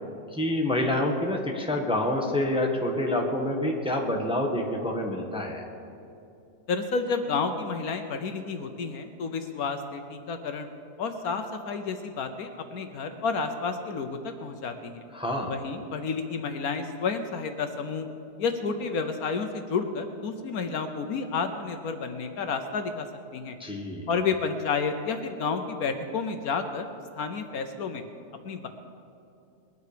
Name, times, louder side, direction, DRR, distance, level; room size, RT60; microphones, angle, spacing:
voice 1, 0.3-5.6 15.1-15.5 23.6-24.1, left 1 dB, 5° right, 1 dB, 1.2 m, -27 dB
voice 2, 6.7-10.7 11.0-15.0 15.5-18.1 18.4-23.1 23.3-23.6 24.1-26.9 27.2-28.0 28.4-28.7, left 5 dB, 65° left, 7 dB, 1.2 m, -30 dB
21.0 x 9.5 x 5.0 m, 2.7 s
omnidirectional pair, 1.7 m